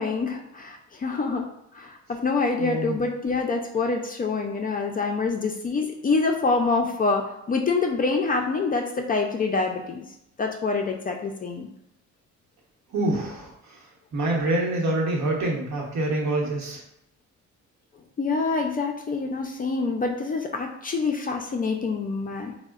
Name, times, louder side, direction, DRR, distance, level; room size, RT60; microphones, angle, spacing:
voice 1, 0.0-1.5 1.7-10.1 10.4-11.7 18.2-22.5, left 4 dB, 30° left, 3 dB, 0.3 m, -26 dB
voice 2, 2.6-3.0 12.9-13.5 14.1-16.8, right 2 dB, 65° right, -2 dB, 0.9 m, -26 dB
3.6 x 2.1 x 2.3 m, 0.80 s
cardioid pair, 90°, 30 cm